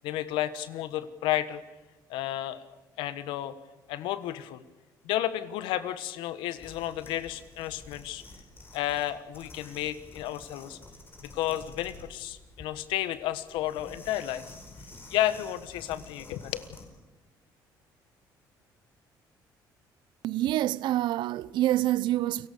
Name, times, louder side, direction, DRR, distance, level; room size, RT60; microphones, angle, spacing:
voice 1, 0.0-1.6 2.1-2.6 3.0-3.5 3.9-4.6 5.0-8.2 8.7-10.8 11.2-14.4 15.1-16.8, left 13 dB, 90° left, 1.4 m, -32 dB
sound 1, 6.6-16.9, left 2 dB, 25° left, 5.1 m, -50 dB
voice 2, 20.2-22.5, right 14 dB, 70° right, 0.7 m, -27 dB
29.5 x 18.0 x 7.0 m
cardioid pair, 105°, 8 cm